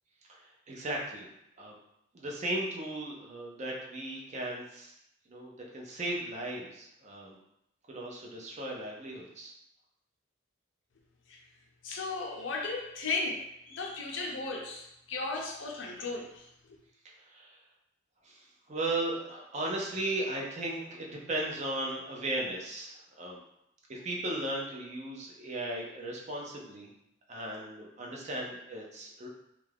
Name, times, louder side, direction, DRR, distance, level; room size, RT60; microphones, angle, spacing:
voice 1, 0.3-1.3 1.6-1.8 2.1-4.9 5.3-7.4 7.9-9.5 17.0-17.6 18.2-23.4 23.9-26.9 27.3-29.3, right 1 dB, 35° right, -2 dB, 0.5 m, -36 dB
voice 2, 11.8-16.8, left 3 dB, 70° left, -1 dB, 0.5 m, -36 dB
2.4 x 2.2 x 3.3 m, 0.80 s
head